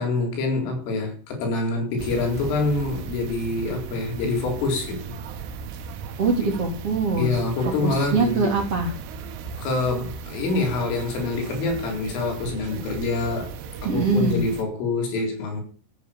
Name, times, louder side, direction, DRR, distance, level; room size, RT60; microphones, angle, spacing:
voice 1, 0.0-5.2 6.4-6.5 7.2-8.6 9.6-13.5 13.8-15.6, left 3 dB, 85° left, 6.5 m, -26 dB
sound 1, 2.0-14.6, right 6 dB, 85° right, 4.0 m, -36 dB
voice 2, 6.2-7.4 7.8-8.9 13.8-14.5, right 3 dB, 35° right, 3.4 m, -23 dB
14.0 x 9.0 x 7.1 m
omnidirectional pair, 5.6 m